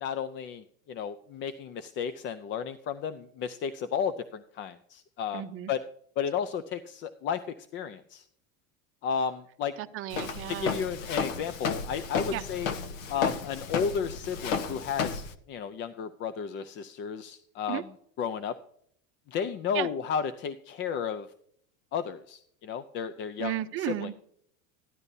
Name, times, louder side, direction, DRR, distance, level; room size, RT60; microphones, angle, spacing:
voice 1, 0.0-5.8 6.2-7.4 7.7-8.3 9.0-9.7 10.5-12.7 13.1-17.9 18.2-18.6 19.3-21.3 21.9-24.1, left 7 dB, 30° left, 0.5 m, -33 dB
voice 2, 5.3-5.7 9.8-10.8 12.3-12.4 17.7-17.8 19.7-19.9 23.4-24.1, right 14 dB, 35° right, 0.7 m, -34 dB
Walk footsteps, 10.1-15.3, left 5 dB, 90° left, 1.2 m, -33 dB
14.0 x 11.5 x 2.7 m
supercardioid pair, 140°, 39 cm